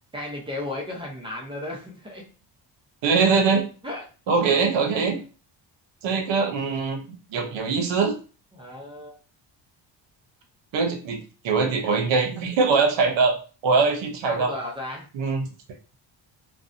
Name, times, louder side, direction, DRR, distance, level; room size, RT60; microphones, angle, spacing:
voice 1, 0.1-2.3 3.8-4.0 8.5-9.1 14.3-15.1, left 1 dB, 10° right, -1 dB, 0.5 m, -34 dB
voice 2, 3.0-3.6 4.3-5.2 6.0-7.0 7.3-8.1 10.7-11.2 11.4-13.3 13.6-14.5 15.1-15.5, right 4 dB, 75° right, 4 dB, 0.8 m, -22 dB
2.6 x 2.2 x 2.5 m, 0.36 s
cardioid pair, 155°, 45 cm